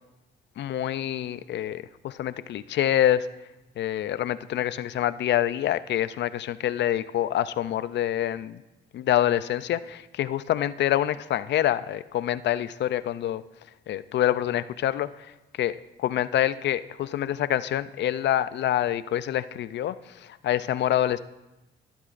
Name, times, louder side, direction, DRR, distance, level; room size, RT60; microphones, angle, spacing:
voice 1, 0.6-3.3 3.8-8.6 8.9-13.4 13.9-15.1 15.6-21.2, left 12 dB, 65° left, 15 dB, 0.4 m, -26 dB
13.0 x 12.0 x 2.5 m, 1.0 s
cardioid pair, 90°, 20 cm